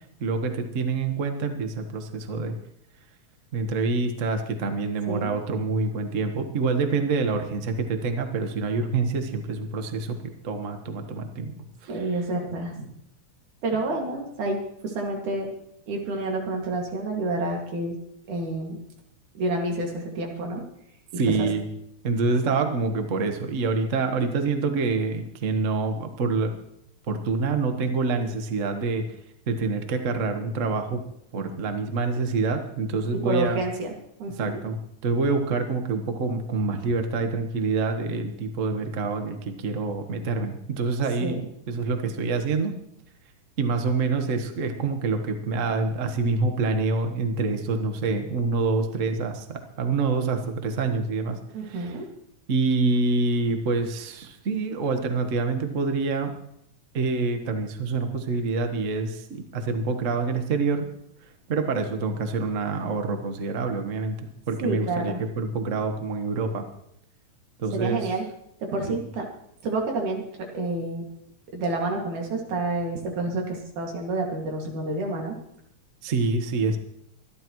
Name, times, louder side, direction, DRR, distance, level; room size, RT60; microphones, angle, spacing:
voice 1, 0.2-2.5 3.5-10.2 10.4-11.5 11.8-12.0 21.2-21.6 22.0-26.5 27.1-29.0 29.5-31.0 31.3-33.6 34.4-42.7 43.6-51.9 52.5-56.3 56.9-60.8 61.5-64.2 64.5-66.7 67.6-68.0 68.9-69.0 76.0-76.8, right 3 dB, 45° right, 6 dB, 1.0 m, -26 dB
voice 2, 11.9-12.9 13.6-15.5 15.9-18.0 18.3-18.8 19.4-20.6 21.3-21.5 33.2-34.6 41.2-41.4 51.5-52.1 64.6-65.2 67.7-68.2 68.7-69.2 69.6-70.2 70.5-71.1 71.5-75.4, right 2 dB, 85° right, 1 dB, 3.8 m, -29 dB
24.0 x 12.0 x 3.1 m, 0.76 s
omnidirectional pair, 3.4 m